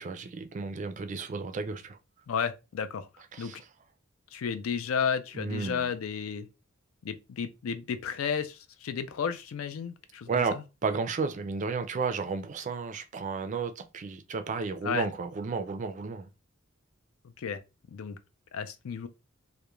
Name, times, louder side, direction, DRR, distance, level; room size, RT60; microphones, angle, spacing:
voice 1, 0.0-2.0 3.3-3.6 5.3-5.9 10.3-16.3, right 4 dB, 35° right, 0.4 m, -33 dB
voice 2, 2.3-3.1 3.4-3.5 4.3-6.5 7.0-10.6 14.8-15.1 17.4-17.6 17.9-18.2 18.5-19.1, left 6 dB, 75° left, 0.4 m, -32 dB
2.3 x 2.1 x 2.9 m
head